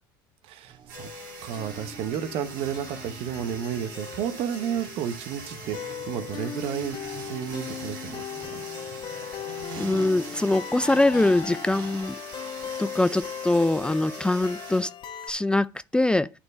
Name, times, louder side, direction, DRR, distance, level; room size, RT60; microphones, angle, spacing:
voice 1, 0.4-1.1 1.4-7.0 7.2-8.2 8.5-8.7, right 9 dB, 65° right, 1.0 m, -32 dB
sound 1, 0.6-14.7, right 7 dB, 50° right, 1.5 m, -48 dB
sound 2, 0.9-15.3, left 9 dB, 45° left, 1.0 m, -39 dB
sound 3, 0.9-14.8, right 5 dB, 90° right, 2.5 m, -43 dB
voice 2, 9.8-12.2 12.8-14.9 15.3-16.3, left 2 dB, 10° left, 0.4 m, -23 dB
9.4 x 4.4 x 5.2 m
hypercardioid pair, 75°, 11 cm